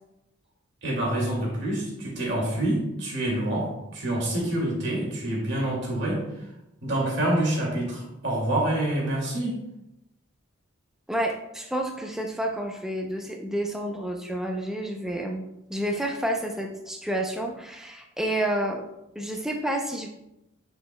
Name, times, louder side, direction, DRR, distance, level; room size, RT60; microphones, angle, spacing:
voice 1, 0.8-6.2 6.8-9.6, right 1 dB, 60° right, -3 dB, 2.3 m, -27 dB
voice 2, 11.1-18.8 19.2-20.1, right 1 dB, ahead, 2 dB, 0.5 m, -29 dB
9.6 x 4.6 x 2.2 m, 0.88 s
head